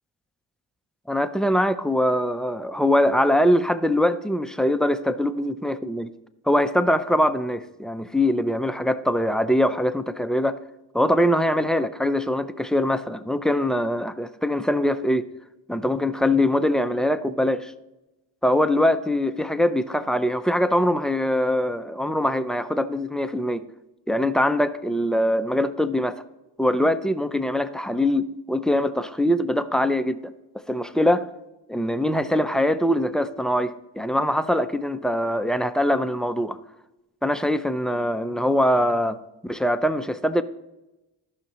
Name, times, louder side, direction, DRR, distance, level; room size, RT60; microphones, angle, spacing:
voice 1, 1.1-6.1 6.5-10.6 10.9-15.3 15.7-17.7 18.4-23.6 24.1-26.2 26.6-30.3 30.7-31.3 31.7-36.6 37.2-40.4, left 1 dB, ahead, 0.4 m, -23 dB
14.0 x 5.8 x 3.0 m
cardioid pair, 65°, 47 cm